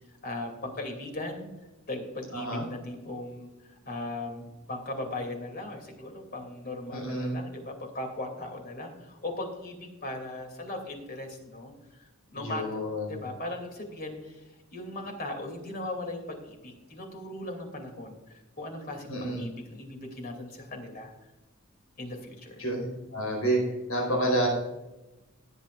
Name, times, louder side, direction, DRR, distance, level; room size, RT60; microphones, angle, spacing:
voice 1, 0.2-1.5 1.9-12.6 13.1-21.1 22.0-22.6, left 2 dB, 45° left, 3 dB, 2.8 m, -38 dB
voice 2, 2.3-2.6 6.9-7.4 12.3-13.2 19.1-19.4 22.6-22.9 23.1-23.6 23.9-24.5, right 1 dB, 85° left, -1 dB, 4.4 m, -29 dB
18.0 x 9.1 x 2.5 m, 1.0 s
head